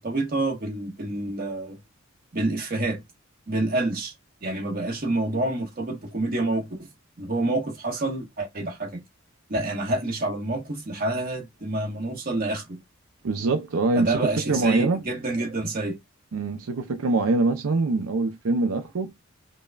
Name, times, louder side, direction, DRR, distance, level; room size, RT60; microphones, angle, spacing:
voice 1, 0.0-1.8 2.3-3.0 3.5-4.1 4.4-6.9 7.2-9.0 9.5-12.8 13.9-16.0, right 2 dB, 45° right, 1.3 m, -28 dB
voice 2, 13.2-15.0 16.3-19.1, right 3 dB, 85° right, 0.5 m, -24 dB
5.2 x 2.2 x 2.3 m
head